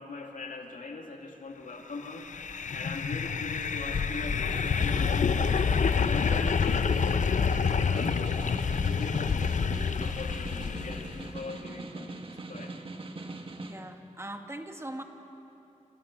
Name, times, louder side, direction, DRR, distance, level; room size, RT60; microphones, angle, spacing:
voice 1, 0.0-2.3 2.7-5.5 5.8-9.6 10.0-12.7, left 3 dB, 85° left, 2 dB, 2.7 m, -40 dB
sound 1, 2.1-11.3, left 6 dB, 65° left, 0.7 m, -28 dB
Snare drum, 4.1-13.8, right 2 dB, 45° right, 1.8 m, -42 dB
voice 2, 13.6-15.0, right 1 dB, 20° right, 4 dB, 1.9 m, -40 dB
28.0 x 27.5 x 7.5 m, 2.9 s
wide cardioid pair, 120°, 13 cm